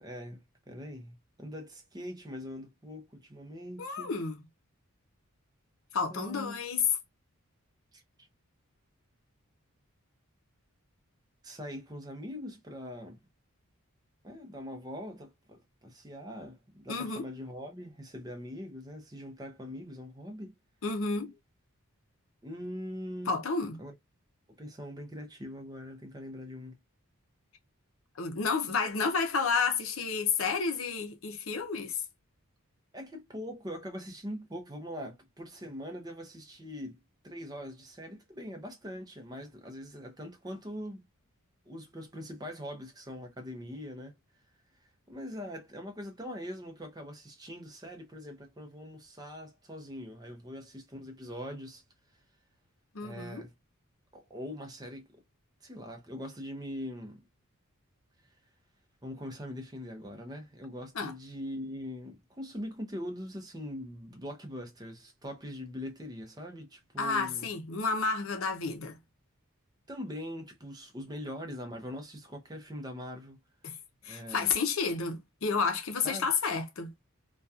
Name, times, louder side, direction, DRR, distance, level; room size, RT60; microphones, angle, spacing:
voice 1, 0.0-4.2 6.1-6.6 7.9-8.0 11.4-13.2 14.2-20.5 22.4-23.4 23.8-24.0 24.6-26.7 32.9-37.0 37.2-41.1 41.7-44.2 44.8-51.8 53.0-53.5 54.1-55.2 55.6-57.2 59.0-67.5 69.9-73.4 74.1-74.6 76.0-76.3, equal, 20° right, 0.6 m, -42 dB
voice 2, 3.8-4.4 5.9-6.8 16.9-17.3 20.8-21.3 23.3-23.8 28.2-32.0 52.9-53.4 61.0-61.1 67.0-69.0 73.6-73.7 74.0-76.9, left 5 dB, 65° left, 0.6 m, -31 dB
2.8 x 2.3 x 2.3 m
head